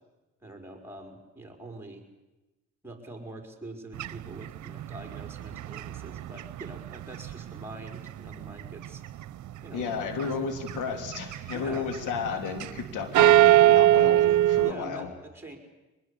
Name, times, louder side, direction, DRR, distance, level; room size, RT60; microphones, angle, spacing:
voice 1, 0.4-2.1 2.8-9.0 9.6-9.8 10.2-10.5 11.5-11.9 14.6-15.6, right 1 dB, 5° right, 3 dB, 5.1 m, -44 dB
sound 1, 4.0-8.1 8.4-9.2 9.7-10.3 10.6-12.8 13.1-14.7, right 14 dB, 70° right, 1.0 m, -21 dB
voice 2, 9.7-15.1, left 5 dB, 85° left, 7 dB, 3.2 m, -33 dB
24.0 x 21.0 x 8.5 m, 1.1 s
cardioid pair, 90°, 30 cm